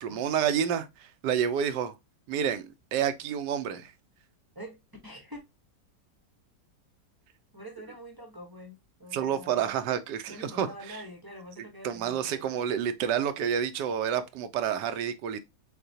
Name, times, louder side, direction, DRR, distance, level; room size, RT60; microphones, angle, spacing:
voice 1, 0.0-1.9 2.3-2.7 2.9-3.9 9.1-11.0 11.8-15.4, right 8 dB, 85° right, 1.2 m, -29 dB
voice 2, 4.5-5.4 7.5-9.6 10.3-12.5, equal, 20° right, 0.7 m, -46 dB
6.5 x 2.2 x 2.7 m
omnidirectional pair, 1.8 m